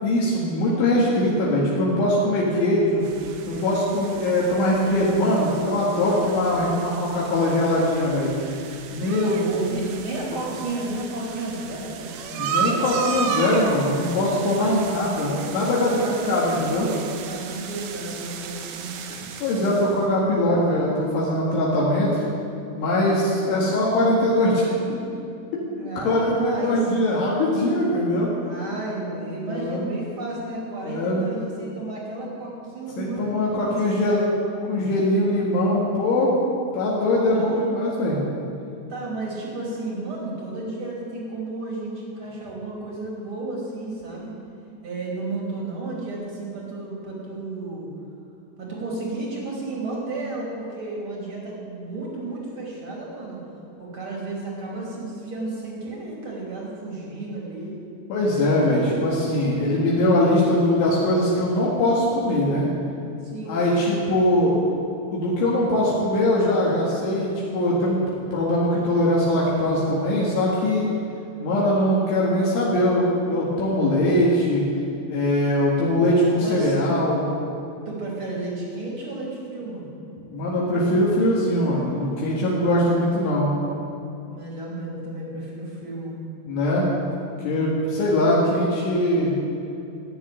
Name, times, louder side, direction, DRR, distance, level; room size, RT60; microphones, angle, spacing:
voice 1, 0.0-3.0 3.5-8.3 8.9-9.9 12.4-16.0 16.3-16.9 19.1-22.2 22.8-25.0 26.0-26.3 26.6-28.3 29.5-29.8 30.8-31.4 33.0-34.2 34.7-36.3 36.7-38.2 58.1-62.7 63.5-64.6 65.1-70.9 71.4-74.6 75.1-77.2 80.3-83.5 86.5-86.9 87.4-89.3, left 1 dB, 75° left, -5 dB, 4.3 m, -21 dB
sound 1, 3.0-20.0, right 6 dB, 85° right, 3.6 m, -34 dB
voice 2, 9.3-12.5 14.5-14.8 15.8-18.9 23.1-23.4 25.7-26.8 28.4-34.4 37.3-37.6 38.9-44.4 44.8-47.9 48.6-53.4 53.8-57.7 63.2-64.0 76.4-76.7 77.8-79.9 82.6-82.9 84.3-86.2, right 2 dB, 30° right, -3 dB, 2.9 m, -32 dB
15.5 x 7.4 x 9.9 m, 2.7 s
omnidirectional pair, 5.7 m